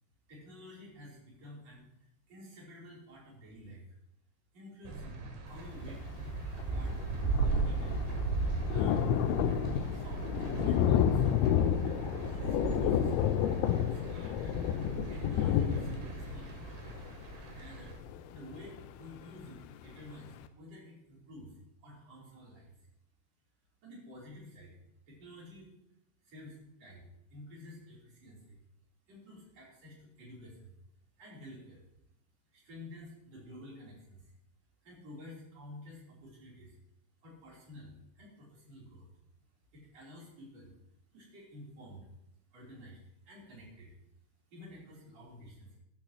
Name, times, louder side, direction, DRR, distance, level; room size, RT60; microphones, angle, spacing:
voice 1, 0.3-4.0 4.5-6.2 6.7-7.0 7.4-8.0 8.6-9.1 9.9-11.3 12.2-14.5 15.1-17.0 17.5-18.0 18.3-21.5 21.8-22.7 23.8-24.8 25.1-25.7 26.2-28.6 29.1-30.7 31.2-31.8 32.5-34.3 34.8-36.8 37.2-39.1 39.7-40.8 41.1-42.1 42.5-43.9 44.5-45.8, left 1 dB, 35° right, -5 dB, 4.2 m, -51 dB
sound 1, 4.9-18.0, right 4 dB, 75° right, 4.1 m, -37 dB
Thunder, 6.3-6.4 6.6-19.2 19.7-19.8 20.1-20.2, left 10 dB, 80° left, 2.7 m, -31 dB
14.5 x 11.5 x 3.0 m, 0.81 s
omnidirectional pair, 5.7 m